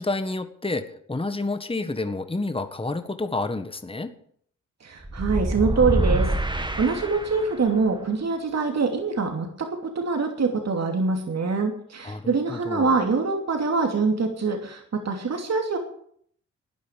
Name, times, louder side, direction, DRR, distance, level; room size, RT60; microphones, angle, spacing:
voice 1, 0.0-4.1 12.0-13.0, left 2 dB, 15° left, 9 dB, 1.5 m, -29 dB
voice 2, 4.8-15.8, right 4 dB, 55° right, 3 dB, 2.8 m, -24 dB
sound 1, 5.0-7.7, right 1 dB, 15° right, 2.0 m, -26 dB
13.0 x 9.7 x 9.2 m, 0.63 s
cardioid pair, 60°, 31 cm